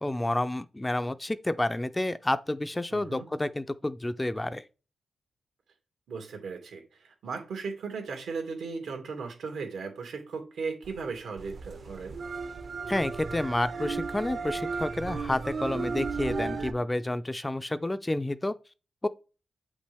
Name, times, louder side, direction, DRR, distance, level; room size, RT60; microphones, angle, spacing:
voice 1, 0.0-4.6 12.9-18.5 19.0-19.1, left 1 dB, 10° left, 0.3 m, -30 dB
voice 2, 2.9-3.3 6.1-12.2, right 4 dB, 85° right, 2.2 m, -37 dB
sound 1, 10.8-16.7, right 4 dB, 45° right, 0.7 m, -34 dB
8.0 x 5.2 x 3.4 m
wide cardioid pair, 135°, 0 cm